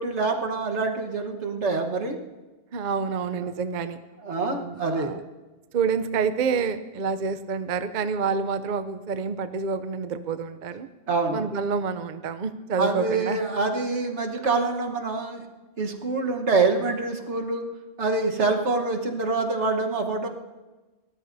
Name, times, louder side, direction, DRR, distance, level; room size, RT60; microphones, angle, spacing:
voice 1, 0.0-2.2 4.2-5.1 11.1-11.5 12.8-15.4 15.8-17.6 18.0-20.3, right 3 dB, 80° right, 3 dB, 1.6 m, -25 dB
voice 2, 2.7-4.0 4.4-5.2 5.7-10.9 11.3-13.4, right 5 dB, 50° right, 11 dB, 0.7 m, -28 dB
29.5 x 13.5 x 2.7 m, 1.2 s
omnidirectional pair, 1.2 m